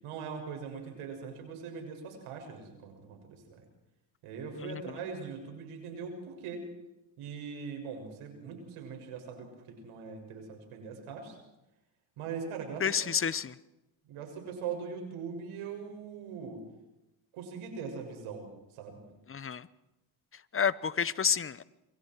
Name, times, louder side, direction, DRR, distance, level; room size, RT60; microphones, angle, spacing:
voice 1, 0.0-3.6 4.2-6.7 7.2-11.4 12.2-13.1 14.1-16.6 17.3-19.0, right 6 dB, 80° right, 3 dB, 6.9 m, -41 dB
voice 2, 4.6-5.0 12.8-13.6 19.3-19.7 20.5-21.6, left 7 dB, 25° left, 18 dB, 0.9 m, -30 dB
28.0 x 24.0 x 4.7 m, 0.94 s
cardioid pair, 95°, 50 cm